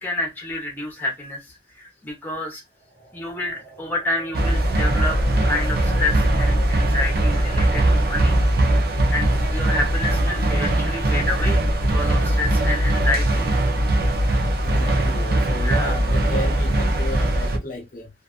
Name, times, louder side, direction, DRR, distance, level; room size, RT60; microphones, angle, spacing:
voice 1, 0.0-2.6 3.1-8.4 9.1-13.5 15.6-16.0, left 2 dB, 10° left, 0.9 m, -29 dB
sound 1, 2.8-10.8, left 2 dB, 85° right, 1.2 m, -42 dB
sound 2, 4.3-17.6, right 1 dB, 60° right, 0.5 m, -20 dB
voice 2, 14.6-18.1, left 1 dB, 50° left, 0.6 m, -33 dB
2.6 x 2.4 x 2.4 m
head